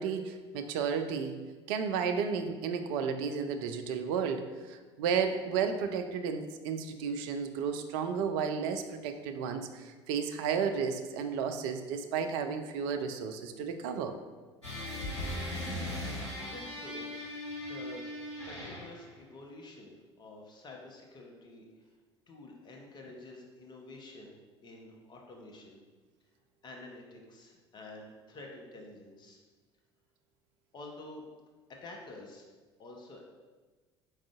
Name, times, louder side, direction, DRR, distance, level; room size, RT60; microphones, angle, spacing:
voice 1, 0.0-14.1, right 6 dB, 55° right, 7 dB, 0.4 m, -33 dB
sound 1, 14.6-19.1, left 1 dB, 85° left, 1.0 m, -38 dB
voice 2, 16.3-17.1 17.7-18.1 18.4-21.7 22.3-25.8 26.6-29.4 30.7-31.2 31.7-32.5 32.8-33.2, left 2 dB, 30° left, 0 dB, 0.7 m, -49 dB
4.7 x 3.7 x 2.3 m, 1.3 s
figure-of-eight pair, 65°, 14 cm